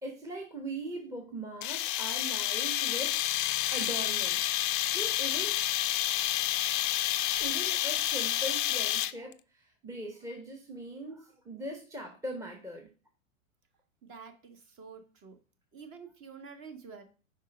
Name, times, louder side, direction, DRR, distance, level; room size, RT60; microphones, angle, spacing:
voice 1, 0.0-3.2 3.7-4.5 4.9-5.6 7.4-12.9, right 1 dB, 5° right, 2 dB, 0.9 m, -40 dB
sound 1, 1.6-9.3, left 13 dB, 40° left, 0.4 m, -29 dB
voice 2, 14.0-15.4 15.7-17.0, right 5 dB, 30° right, 6 dB, 1.4 m, -48 dB
5.3 x 5.0 x 5.2 m, 0.35 s
hypercardioid pair, 110°, 41 cm